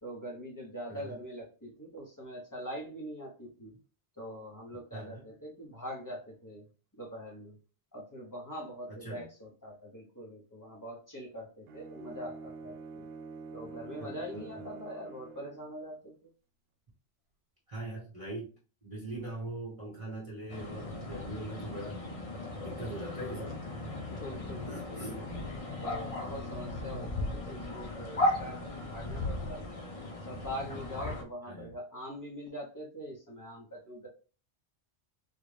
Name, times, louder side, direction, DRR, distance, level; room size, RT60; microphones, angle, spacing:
voice 1, 0.0-3.7 4.2-6.7 6.9-7.6 7.9-13.1 13.5-16.3 24.1-25.0 25.8-29.8 30.3-34.1, equal, 20° left, -2 dB, 1.0 m, -43 dB
voice 2, 4.9-5.2 8.9-9.2 14.0-14.6 17.7-18.5 18.8-22.1 22.6-23.6 24.6-25.5 31.4-31.7, right 1 dB, 30° right, -6 dB, 1.3 m, -42 dB
Bowed string instrument, 11.7-15.7, right 4 dB, 70° right, 0.8 m, -46 dB
sound 1, 20.5-31.2, left 1 dB, 40° left, 0.6 m, -36 dB
3.9 x 2.5 x 3.3 m, 0.36 s
omnidirectional pair, 1.1 m